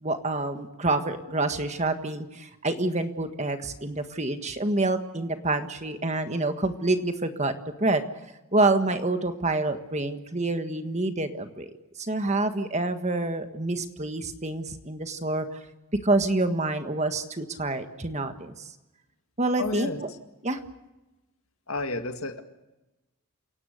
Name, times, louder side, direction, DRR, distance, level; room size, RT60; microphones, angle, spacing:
voice 1, 0.0-7.5 7.8-8.0 8.5-11.7 12.0-15.6 16.0-18.7 19.4-19.9 20.4-20.6, right 2 dB, 30° right, 8 dB, 1.6 m, -27 dB
voice 2, 19.6-20.0 21.7-22.4, left 3 dB, 70° left, 7 dB, 2.0 m, -31 dB
28.5 x 17.5 x 6.7 m, 1.0 s
head